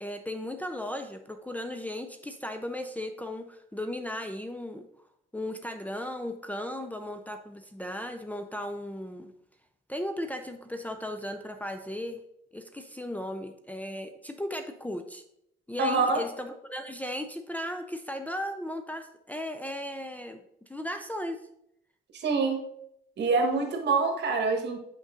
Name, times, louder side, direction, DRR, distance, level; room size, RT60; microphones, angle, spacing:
voice 1, 0.0-4.9 5.3-9.3 9.9-12.2 12.5-15.2 15.7-20.4 20.7-21.4, left 1 dB, 10° left, 5 dB, 0.5 m, -36 dB
voice 2, 15.8-16.2 22.1-22.6 23.2-24.8, right 4 dB, 60° right, 4 dB, 1.5 m, -25 dB
6.2 x 5.3 x 3.7 m, 0.75 s
cardioid pair, 90°, 20 cm